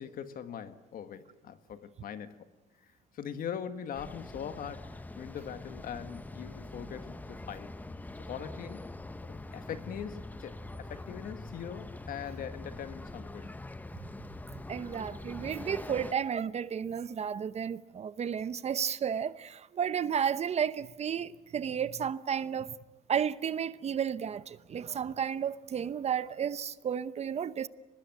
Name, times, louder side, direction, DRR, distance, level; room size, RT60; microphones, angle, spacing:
voice 1, 0.0-2.5 2.8-7.7 8.2-8.9 9.3-13.5, left 8 dB, 55° left, 1.8 m, -42 dB
sound 1, 3.9-16.1, left 2 dB, 10° left, 0.9 m, -44 dB
voice 2, 14.7-22.7 23.1-27.7, right 8 dB, 40° right, 0.8 m, -32 dB
24.0 x 20.0 x 9.4 m
cardioid pair, 110°, 17 cm